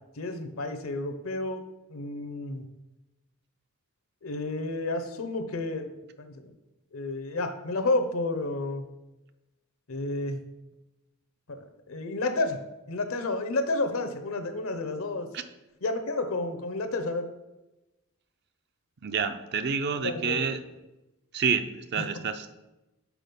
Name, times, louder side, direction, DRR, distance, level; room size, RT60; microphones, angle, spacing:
voice 1, 0.2-1.6 1.9-2.6 4.2-5.9 6.2-6.5 6.9-8.9 9.9-10.4 11.5-12.6 12.9-15.3 15.8-17.3 20.0-20.5 22.0-22.1, left 2 dB, 75° left, 8 dB, 0.8 m, -31 dB
voice 2, 19.0-20.6 21.3-22.5, right 6 dB, 50° right, 9 dB, 0.5 m, -28 dB
6.1 x 4.7 x 5.2 m, 0.99 s
head